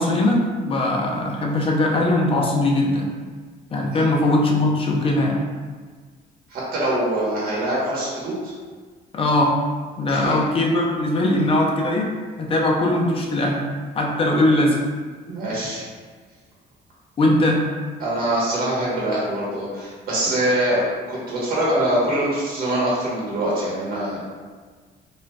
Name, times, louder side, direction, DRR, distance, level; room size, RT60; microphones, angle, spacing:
voice 1, 0.0-3.1 3.7-5.4 9.1-9.5 10.0-12.1 12.4-13.6 13.9-14.8 17.2-17.6, left 1 dB, 35° left, -1 dB, 0.6 m, -20 dB
voice 2, 6.5-8.5 10.1-10.3 15.3-15.8 18.0-20.8 21.1-24.2, right 1 dB, 65° right, -6 dB, 1.1 m, -24 dB
4.2 x 2.4 x 2.2 m, 1.5 s
cardioid pair, 110°, 17 cm